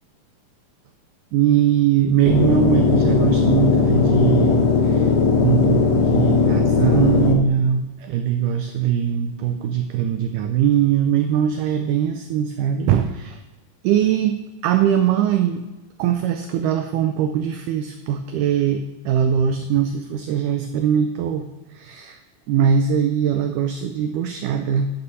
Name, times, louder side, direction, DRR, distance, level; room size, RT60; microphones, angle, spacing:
voice 1, 1.3-13.4 13.8-14.4 14.6-15.6 16.0-22.2 22.5-24.9, right 9 dB, 80° right, 7 dB, 1.9 m, -21 dB
sound 1, 2.3-7.3, left 5 dB, 65° left, 1.7 m, -18 dB
9.8 x 6.8 x 5.4 m, 1.2 s
omnidirectional pair, 4.1 m